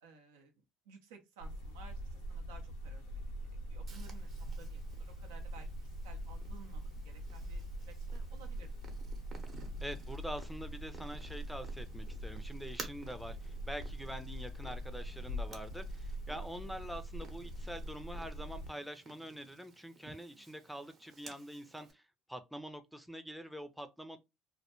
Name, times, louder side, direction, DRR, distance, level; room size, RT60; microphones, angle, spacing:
voice 1, 0.0-3.2 3.7-4.3 4.6-8.7 20.3-20.5, right 5 dB, 90° right, 0.6 m, -57 dB
sound 1, 1.4-18.7, equal, 85° left, 0.6 m, -43 dB
Purr, 3.9-21.9, right 4 dB, 45° right, 0.8 m, -55 dB
voice 2, 9.8-22.0 22.3-24.2, equal, ahead, 0.4 m, -45 dB
2.1 x 2.1 x 2.9 m
supercardioid pair, 75°, 0 cm